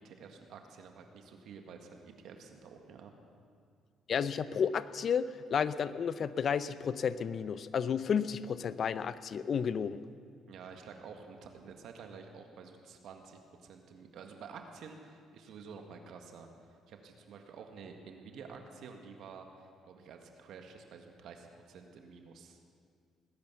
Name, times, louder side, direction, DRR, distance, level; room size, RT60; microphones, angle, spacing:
voice 1, 0.0-3.1 10.5-22.6, right 5 dB, 70° right, 4 dB, 1.8 m, -50 dB
voice 2, 4.1-10.0, left 7 dB, 55° left, 15 dB, 0.6 m, -32 dB
19.0 x 10.5 x 7.0 m, 2.3 s
supercardioid pair, 75°, 0 cm